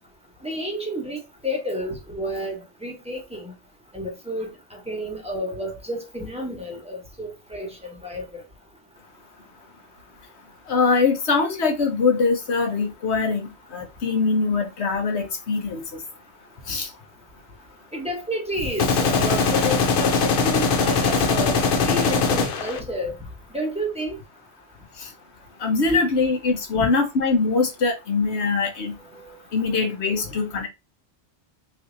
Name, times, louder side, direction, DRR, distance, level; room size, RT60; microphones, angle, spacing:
voice 1, 0.4-3.5 3.9-7.7 8.0-8.2 17.9-23.1 23.5-24.2 26.8-26.9, equal, 5° right, 1.1 m, -30 dB
voice 2, 10.7-15.8 16.7-16.9 25.0-25.1 25.6-28.9 29.5-30.7, left 4 dB, 75° left, 1.3 m, -22 dB
sound 1, 18.8-22.8, left 4 dB, 60° left, 0.7 m, -21 dB
3.3 x 2.6 x 3.8 m
omnidirectional pair, 1.1 m